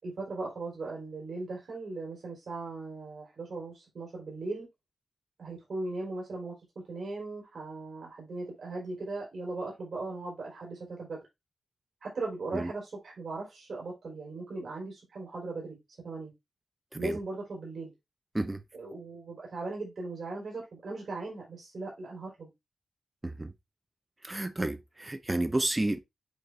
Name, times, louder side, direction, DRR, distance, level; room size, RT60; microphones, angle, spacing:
voice 1, 0.0-4.7 5.4-6.5 6.9-11.2 12.0-15.8 16.0-16.3 17.0-17.9 18.7-22.5, right 3 dB, 60° right, 3.8 m, -38 dB
voice 2, 24.2-26.0, right 2 dB, 15° right, 0.9 m, -31 dB
8.1 x 3.9 x 3.4 m
wide cardioid pair, 110°, 0 cm